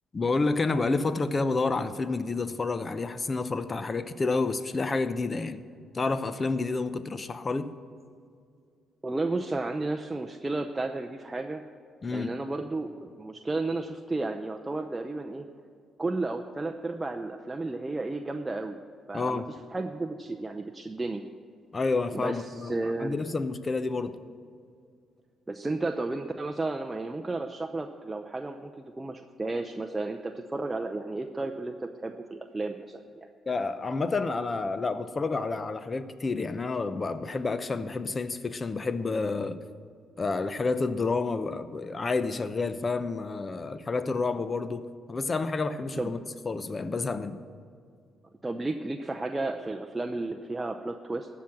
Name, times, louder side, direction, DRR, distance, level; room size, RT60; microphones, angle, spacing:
voice 1, 0.1-5.7 5.9-7.7 12.0-12.3 19.1-19.5 21.7-24.1 33.5-39.6 40.2-46.2 46.4-47.4, left 3 dB, 30° left, 12 dB, 0.7 m, -29 dB
voice 2, 9.0-11.6 12.1-15.4 16.0-18.8 19.1-19.4 19.7-21.2 22.1-23.2 25.5-33.3 46.0-46.1 48.4-51.3, right 2 dB, 15° right, 4 dB, 0.6 m, -33 dB
14.0 x 5.9 x 8.7 m, 2.2 s
cardioid pair, 90°, 0 cm